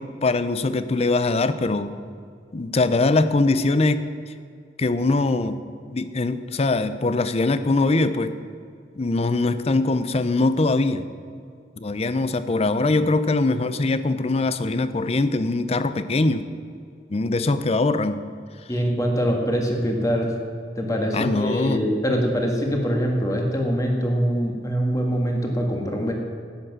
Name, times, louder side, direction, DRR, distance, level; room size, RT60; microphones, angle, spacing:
voice 1, 0.0-1.9 2.5-4.1 4.8-5.6 5.9-8.4 8.9-11.1 11.8-16.5 17.1-18.2 21.1-21.8, left 2 dB, 35° left, 12 dB, 0.5 m, -22 dB
voice 2, 18.7-20.3 20.7-26.1, equal, 20° left, 1 dB, 1.6 m, -23 dB
11.5 x 8.8 x 6.1 m, 2.2 s
head